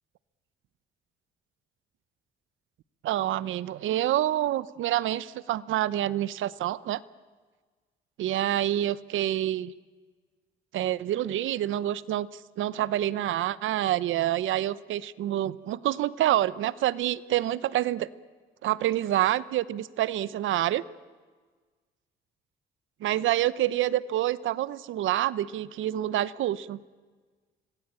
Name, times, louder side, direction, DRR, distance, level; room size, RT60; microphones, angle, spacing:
voice 1, 3.0-7.0 8.2-9.7 10.7-18.1 18.6-20.8 23.0-26.8, right 13 dB, 80° right, 19 dB, 0.9 m, -27 dB
27.0 x 20.0 x 8.9 m, 1.4 s
cardioid pair, 90°, 20 cm